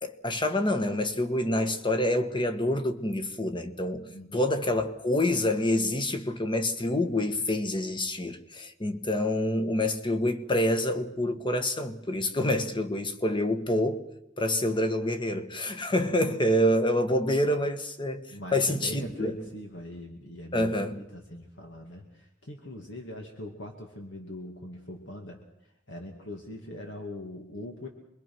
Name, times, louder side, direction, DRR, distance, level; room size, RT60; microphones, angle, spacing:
voice 1, 0.0-14.0 14.4-18.2 18.5-19.4 20.5-21.0, left 1 dB, 25° left, 1.5 m, -27 dB
voice 2, 4.1-4.5 15.9-16.1 18.3-27.9, left 1 dB, 65° left, 2.5 m, -42 dB
26.5 x 22.0 x 6.2 m
head